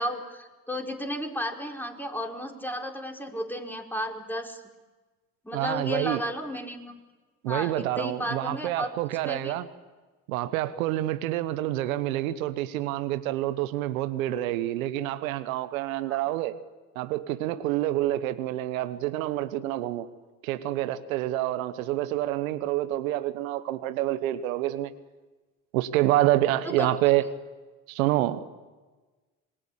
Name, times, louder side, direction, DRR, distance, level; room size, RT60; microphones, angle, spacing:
voice 1, 0.0-4.6 5.4-7.0 7.5-8.9 9.2-9.5 16.1-16.2 26.6-26.9, equal, 5° left, 2 dB, 4.7 m, -33 dB
voice 2, 5.5-6.2 7.4-9.7 10.3-16.6 16.9-20.1 20.4-24.9 25.7-27.3 27.9-28.4, right 14 dB, 85° right, 11 dB, 1.2 m, -27 dB
27.0 x 21.5 x 8.6 m, 1.3 s
hypercardioid pair, 60°, 40 cm